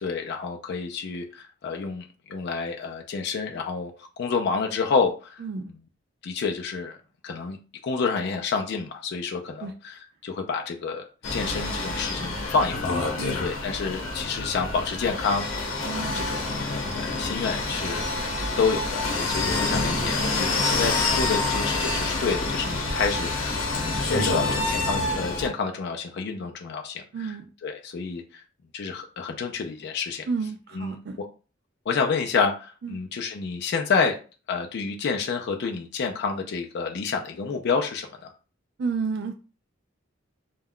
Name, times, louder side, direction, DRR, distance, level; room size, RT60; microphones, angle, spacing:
voice 1, 0.0-2.0 2.3-5.4 5.7-5.8 6.2-7.0 7.2-7.6 7.8-11.1 11.3-13.0 13.4-18.1 18.6-27.4 27.6-28.4 28.7-30.3 30.7-31.3 31.9-34.2 34.5-38.3, left 5 dB, 55° left, 3 dB, 0.4 m, -29 dB
voice 2, 5.4-5.7 9.6-9.7 13.2-13.4 15.9-16.2 19.7-20.1 24.1-24.4 27.1-27.4 30.3-31.2 32.8-33.0 38.8-39.3, right 5 dB, 55° right, 5 dB, 0.3 m, -31 dB
sound 1, 11.2-25.5, left 3 dB, 90° left, 0.8 m, -27 dB
2.3 x 2.1 x 3.5 m, 0.35 s
head